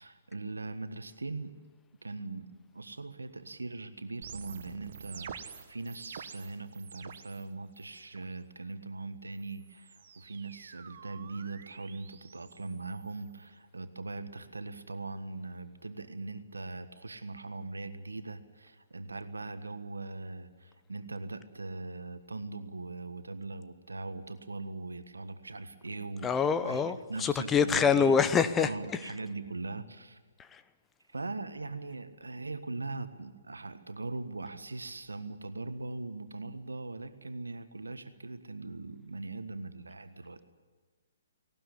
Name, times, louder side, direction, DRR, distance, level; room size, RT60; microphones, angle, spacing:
voice 1, 0.0-1.5 2.0-2.5 2.7-26.8 27.1-28.1 28.6-30.2 31.1-40.4, right 3 dB, 75° right, 1.5 m, -40 dB
sound 1, 4.2-7.4 7.7-8.3 9.3-13.5, right 7 dB, 50° right, 1.6 m, -49 dB
voice 2, 26.2-29.2 30.4-30.6, left 6 dB, 15° left, 0.8 m, -26 dB
18.5 x 18.0 x 10.0 m
figure-of-eight pair, 125°, 0 cm